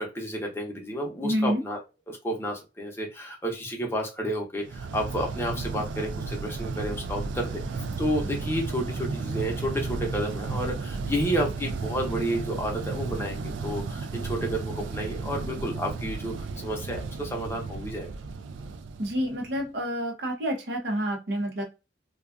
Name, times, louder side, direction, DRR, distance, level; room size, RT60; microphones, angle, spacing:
voice 1, 0.0-1.8 2.1-18.1, equal, 15° left, 1 dB, 0.7 m, -31 dB
voice 2, 1.2-1.6 19.0-21.6, equal, 65° right, 2 dB, 0.8 m, -28 dB
sound 1, 4.7-19.7, right 4 dB, 85° right, 0.3 m, -33 dB
2.4 x 2.3 x 2.4 m, 0.27 s
head